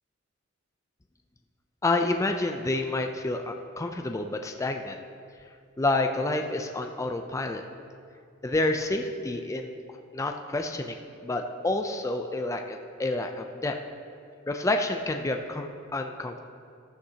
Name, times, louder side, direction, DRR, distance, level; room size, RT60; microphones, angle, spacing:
voice 1, 1.8-5.0 5.8-7.6 8.4-9.8 10.1-13.8 14.5-16.4, left 2 dB, 15° left, 4 dB, 0.4 m, -29 dB
14.5 x 10.5 x 2.9 m, 2.4 s
head